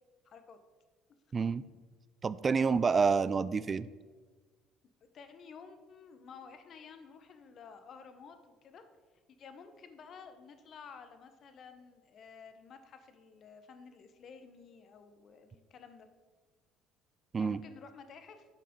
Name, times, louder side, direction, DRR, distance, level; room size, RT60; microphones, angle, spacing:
voice 1, 0.2-0.6 2.6-2.8 5.0-8.8 9.3-16.1 17.4-18.5, left 6 dB, 50° left, 8 dB, 0.9 m, -52 dB
voice 2, 1.3-1.6 2.2-3.9 17.3-17.6, right 5 dB, 35° right, 17 dB, 0.3 m, -28 dB
7.4 x 5.6 x 5.2 m, 1.4 s
supercardioid pair, 75°, 0 cm